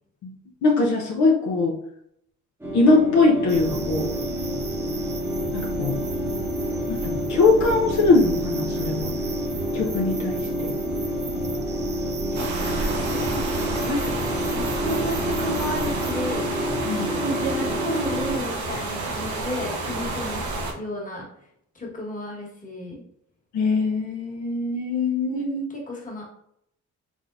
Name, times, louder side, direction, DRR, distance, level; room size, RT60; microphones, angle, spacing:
voice 1, 0.6-1.8 2.7-4.1 5.5-6.0 6.9-9.2 9.7-10.7 16.8-17.1 23.5-25.7, left 3 dB, 70° left, -1 dB, 0.8 m, -21 dB
sound 1, 2.6-18.4, equal, 10° right, 0.9 m, -29 dB
sound 2, 3.5-16.1, right 3 dB, 35° right, 0.6 m, -35 dB
voice 2, 12.3-14.2 14.5-16.5 17.2-20.4 20.7-21.3 21.7-23.0 25.9-26.2, equal, 25° left, -3 dB, 1.4 m, -32 dB
sound 3, 12.3-20.7, right 2 dB, 70° right, 0.8 m, -30 dB
3.6 x 3.4 x 2.5 m, 0.72 s
cardioid pair, 90°, 30 cm